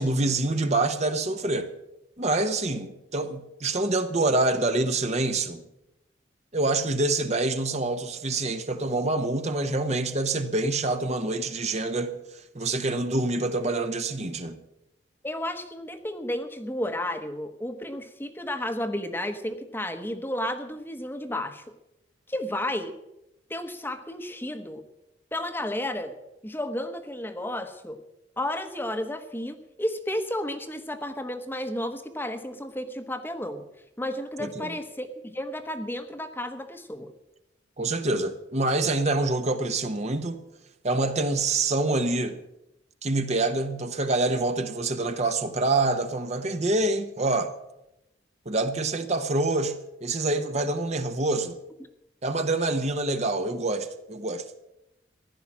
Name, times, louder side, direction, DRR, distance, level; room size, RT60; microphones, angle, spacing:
voice 1, 0.0-1.7 2.2-5.6 6.5-12.1 12.5-14.6 34.4-34.7 37.8-40.4 40.8-42.4 43.0-47.5 48.5-51.6 52.2-54.4, right 2 dB, 35° right, 1.0 m, -26 dB
voice 2, 15.2-21.6 22.3-22.9 23.5-24.8 25.3-26.2 26.4-28.0 28.4-33.7 34.0-37.1, left 1 dB, 10° left, 1.0 m, -32 dB
15.5 x 11.5 x 7.3 m
head